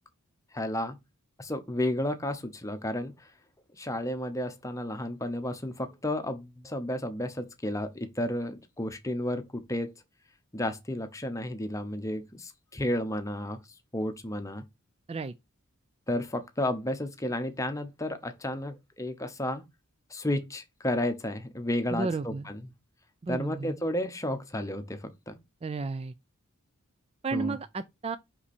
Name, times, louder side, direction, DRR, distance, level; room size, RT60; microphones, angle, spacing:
voice 1, 0.5-1.0 1.4-3.3 3.7-9.9 10.5-13.6 13.9-14.6 16.1-19.6 20.1-22.7 23.3-25.3 27.3-27.6, left 1 dB, 15° left, 0.8 m, -32 dB
voice 2, 21.9-22.5 23.2-23.7 25.6-26.1 27.2-28.2, right 4 dB, 25° right, 0.4 m, -33 dB
5.7 x 5.4 x 4.2 m
head